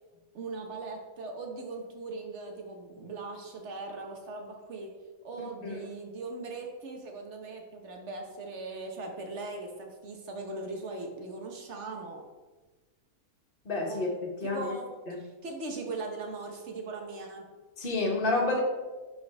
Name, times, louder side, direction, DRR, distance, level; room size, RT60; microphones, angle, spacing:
voice 1, 0.3-4.9 5.2-12.2 13.9-14.0 14.4-14.9 15.2-17.4, right 3 dB, 55° right, 2 dB, 1.4 m, -39 dB
voice 2, 5.4-5.8 13.6-14.7 15.1-15.2 17.8-18.6, left 2 dB, 40° left, -2 dB, 1.5 m, -30 dB
10.5 x 4.2 x 3.5 m, 1.3 s
omnidirectional pair, 1.5 m